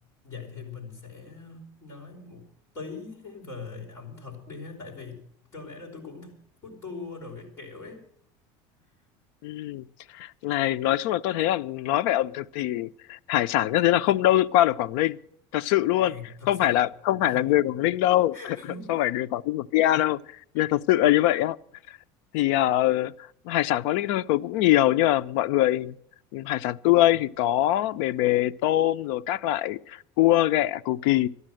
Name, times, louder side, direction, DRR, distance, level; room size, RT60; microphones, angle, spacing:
voice 1, 0.2-2.5 2.7-5.2 5.5-6.4 6.6-8.0 15.8-16.9 17.3-17.5 18.3-19.0 19.8-20.0 20.5-20.6, left 4 dB, 25° left, 4.9 m, -41 dB
voice 2, 9.4-9.8 10.2-15.2 15.5-16.1 16.5-18.6 18.9-20.2 20.5-21.6 22.3-23.1 23.5-25.9 26.3-31.3, left 14 dB, 70° left, 0.5 m, -23 dB
13.5 x 11.0 x 7.7 m
cardioid pair, 175°, 11 cm